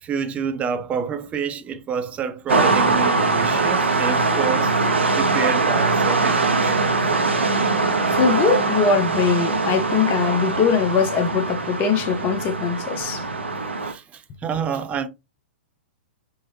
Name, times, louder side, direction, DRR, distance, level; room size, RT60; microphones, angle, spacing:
voice 1, 0.0-4.7 5.2-6.9 13.8-15.1, right 7 dB, 20° right, 0.5 m, -28 dB
sound 1, 2.5-13.9, right 3 dB, 90° right, 0.8 m, -22 dB
voice 2, 8.1-13.2, left 5 dB, 30° left, 0.7 m, -21 dB
3.6 x 2.0 x 2.8 m
figure-of-eight pair, 110°, 6 cm